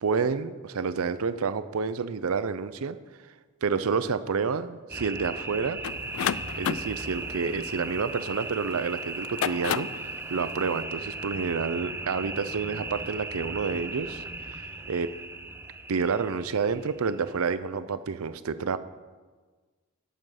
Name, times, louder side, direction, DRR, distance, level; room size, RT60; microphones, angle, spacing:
voice 1, 0.0-3.0 3.6-5.8 6.6-14.2 14.5-15.2 15.9-18.8, right 5 dB, 80° right, 14 dB, 0.5 m, -29 dB
sound 1, 4.9-17.5, right 2 dB, 10° right, 0.4 m, -37 dB
sound 2, 5.8-8.6 9.2-10.1, left 9 dB, 75° left, 0.3 m, -31 dB
8.9 x 7.7 x 6.3 m, 1.4 s
head